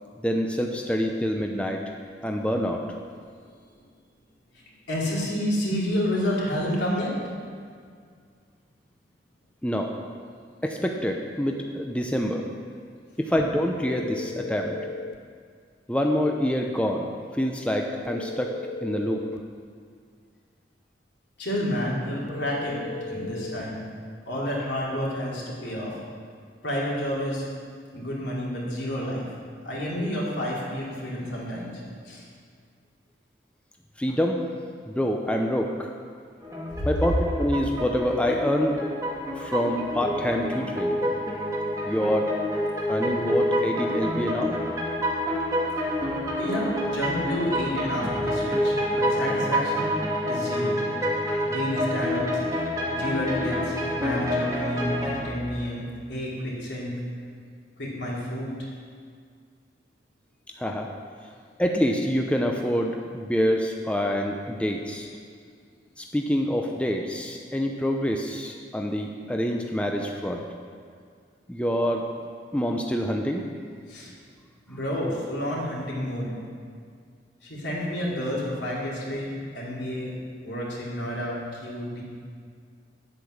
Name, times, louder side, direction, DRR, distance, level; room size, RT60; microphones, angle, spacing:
voice 1, 0.2-1.8 2.2-2.8 9.6-9.9 10.6-12.4 13.2-14.7 15.9-17.1 17.3-18.5 18.8-19.2 34.0-34.4 34.9-35.9 36.9-38.8 39.4-41.0 41.9-42.3 42.9-44.5 60.6-60.9 61.6-65.1 66.0-70.4 71.5-72.0 72.5-73.4, equal, 5° left, 2 dB, 0.5 m, -26 dB
voice 2, 4.5-7.3 21.4-23.8 24.3-26.0 26.6-27.5 27.9-29.3 29.6-32.2 36.8-36.9 46.4-49.9 50.3-50.8 51.3-56.9 57.8-58.5 73.9-74.1 74.7-76.3 77.4-82.0, equal, 80° left, -5 dB, 3.0 m, -30 dB
sound 1, 13.8-15.2 18.0-19.5 22.3-23.7, left 3 dB, 60° left, 0.4 m, -36 dB
sound 2, 36.4-55.2, equal, 20° right, 1.8 m, -28 dB
9.0 x 8.1 x 6.4 m, 2.1 s
head